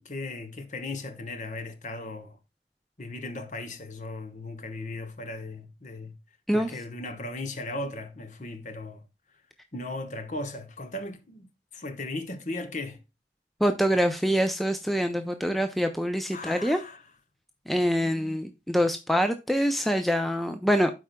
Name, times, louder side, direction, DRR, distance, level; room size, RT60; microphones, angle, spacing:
voice 1, 0.0-2.4 3.0-6.2 6.5-9.0 9.7-13.0 16.3-17.0 17.9-18.5, left 2 dB, 40° left, 1.2 m, -37 dB
voice 2, 13.6-16.8 17.7-20.9, equal, ahead, 0.4 m, -25 dB
12.5 x 4.8 x 2.2 m
head